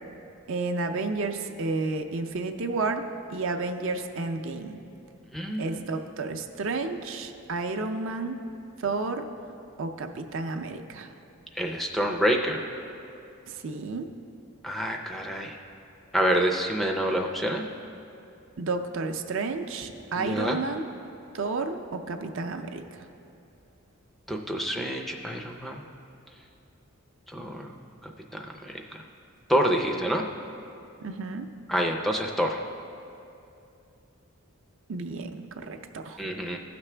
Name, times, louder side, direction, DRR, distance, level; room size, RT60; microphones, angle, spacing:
voice 1, 0.5-4.8 5.6-8.4 8.8-9.3 9.8-11.1 13.5-14.1 18.6-20.9 21.3-23.1 31.0-31.5 34.9-36.2, right 3 dB, 60° right, 6 dB, 0.5 m, -31 dB
voice 2, 5.3-5.6 11.6-12.6 14.6-15.6 16.1-17.6 20.2-20.6 24.3-25.8 27.3-27.7 28.0-29.0 29.5-30.3 31.7-32.6 36.2-36.6, equal, ahead, 2 dB, 0.4 m, -27 dB
15.5 x 5.9 x 3.3 m, 2.7 s
head